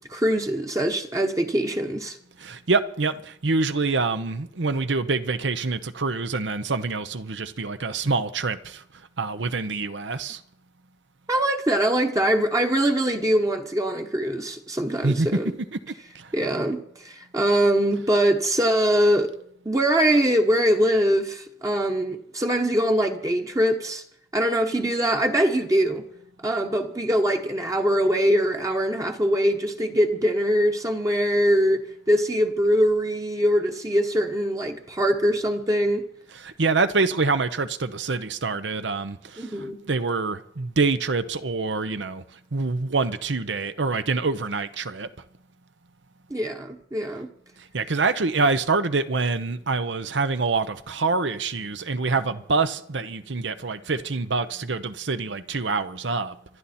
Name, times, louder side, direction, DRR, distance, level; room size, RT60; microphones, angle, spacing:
voice 1, 0.1-2.2 11.3-15.5 16.3-19.3 19.6-24.0 24.3-26.1 26.4-36.1 39.4-39.8 46.3-47.3, equal, 20° right, 1.0 m, -23 dB
voice 2, 2.4-8.8 9.2-10.4 15.0-16.3 36.3-42.2 42.5-45.1 47.7-56.4, right 3 dB, 85° right, 0.9 m, -26 dB
26.0 x 11.0 x 4.3 m
head